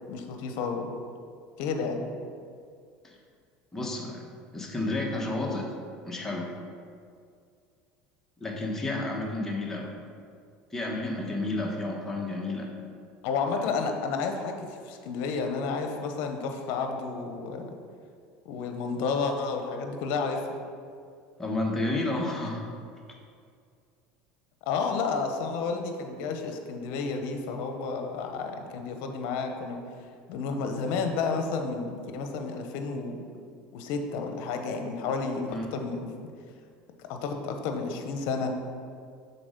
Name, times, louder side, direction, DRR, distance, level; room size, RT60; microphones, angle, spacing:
voice 1, 0.1-0.9 1.6-2.1 13.2-17.7 18.4-20.4 24.7-29.8 30.3-33.2 33.7-36.1 37.1-38.5, left 4 dB, 70° left, 5 dB, 0.8 m, -31 dB
voice 2, 3.7-4.2 4.5-5.7 6.0-6.5 8.4-9.9 10.7-12.7 21.4-22.6 35.5-35.7, left 2 dB, 10° left, -1 dB, 1.1 m, -31 dB
6.0 x 4.0 x 5.1 m, 2.2 s
supercardioid pair, 115°, 4 cm